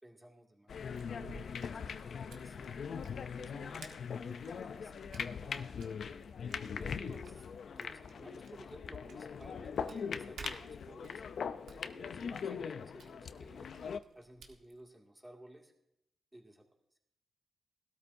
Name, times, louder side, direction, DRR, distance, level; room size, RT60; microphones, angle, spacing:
voice 1, 0.0-1.5 1.8-2.8 3.4-6.1 6.8-7.5 7.7-11.2 11.9-15.7 16.3-16.7, right 1 dB, 15° right, 1 dB, 2.3 m, -56 dB
sound 1, 0.7-14.0, left 6 dB, 65° left, 0.5 m, -41 dB
sound 2, 0.8-14.8, right 4 dB, 80° right, 1.6 m, -57 dB
20.0 x 12.5 x 2.7 m, 0.82 s
cardioid pair, 85°, 0 cm